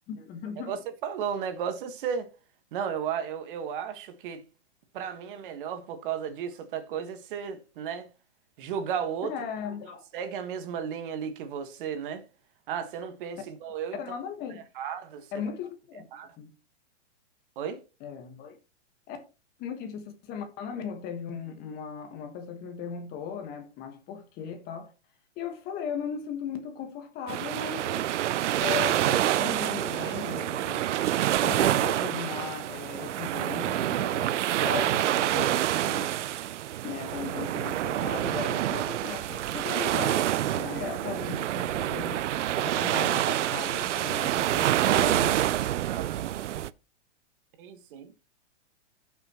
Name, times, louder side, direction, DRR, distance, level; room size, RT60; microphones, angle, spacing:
voice 1, 0.1-0.8 9.2-10.0 13.9-14.6 15.3-16.5 18.0-18.6 19.1-19.2 19.6-24.9 25.4-28.0 28.6-30.8 31.4-36.2 36.8-42.3 42.6-45.5, left 7 dB, 25° left, 1.4 m, -37 dB
voice 2, 0.7-2.3 2.7-4.4 4.9-8.1 8.6-9.3 10.1-12.2 12.7-14.0 14.7-15.4 16.1-16.3 17.5-17.8 45.8-46.4 47.6-48.1, right 7 dB, 45° right, 1.5 m, -34 dB
sound 1, 27.3-46.7, right 12 dB, 85° right, 0.6 m, -27 dB
15.0 x 6.0 x 3.0 m
hypercardioid pair, 150°, 35 cm